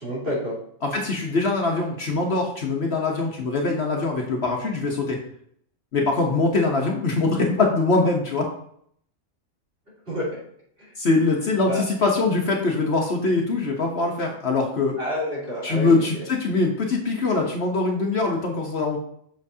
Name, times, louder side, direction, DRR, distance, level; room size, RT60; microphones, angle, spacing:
voice 1, 0.0-0.6 10.1-10.4 11.7-11.8 15.0-16.2, left 1 dB, 45° right, -7 dB, 3.5 m, -28 dB
voice 2, 0.8-5.2 5.9-8.4 11.0-14.9 15.6-19.0, left 3 dB, 55° left, 1 dB, 1.2 m, -23 dB
7.7 x 6.3 x 2.7 m, 0.65 s
omnidirectional pair, 1.4 m